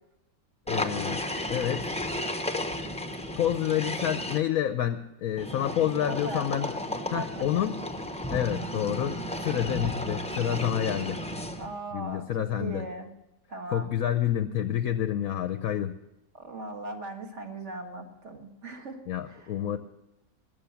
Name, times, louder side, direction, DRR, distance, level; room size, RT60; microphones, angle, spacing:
voice 1, 0.7-1.9 3.3-6.7 7.1-7.8 8.3-11.2 11.9-12.8 13.7-16.0 19.1-19.8, left 10 dB, 65° left, 10 dB, 1.0 m, -28 dB
sound 1, 0.7-4.4 5.4-11.8, left 1 dB, 10° left, 0.4 m, -33 dB
voice 2, 6.1-6.5 7.1-7.7 11.6-12.3 12.6-13.1 13.5-13.9 16.3-19.0 19.2-19.6, right 2 dB, 45° right, 3 dB, 1.9 m, -38 dB
20.5 x 7.0 x 7.0 m, 0.90 s
omnidirectional pair, 1.8 m